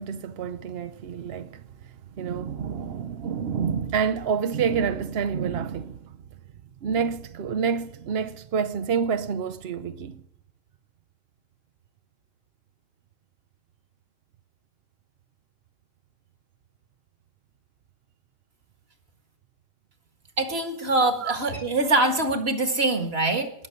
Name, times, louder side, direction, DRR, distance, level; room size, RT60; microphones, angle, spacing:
voice 1, 0.0-1.6 2.2-6.1 6.8-10.2 21.2-21.4, right 6 dB, 65° right, 0.6 m, -28 dB
voice 2, 20.4-23.5, right 2 dB, 35° right, 2.0 m, -24 dB
20.0 x 6.7 x 9.7 m
omnidirectional pair, 1.9 m